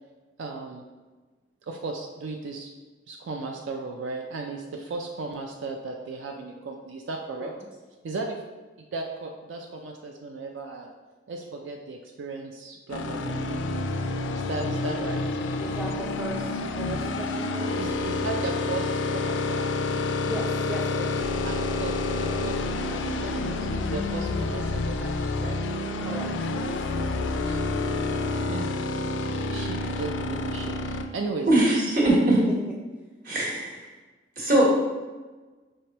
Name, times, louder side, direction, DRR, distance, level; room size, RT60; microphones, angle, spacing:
voice 1, 0.4-0.9 1.6-2.7 3.1-7.5 8.0-8.4 8.9-10.9 11.3-13.4 14.3-15.3 17.8-20.0 21.4-25.6 27.4-27.6 28.0-29.1 29.5-31.6, right 3 dB, 75° right, 3 dB, 0.4 m, -36 dB
sound 1, 12.9-31.0, left 2 dB, 70° left, 0.3 m, -28 dB
voice 2, 15.6-16.5 16.8-17.7 20.2-21.3 26.0-26.7, right 1 dB, 5° right, -3 dB, 0.4 m, -36 dB
voice 3, 31.5-32.4 33.2-33.8 34.4-34.7, right 1 dB, 50° right, -4 dB, 1.2 m, -21 dB
5.1 x 3.3 x 2.8 m, 1.3 s
head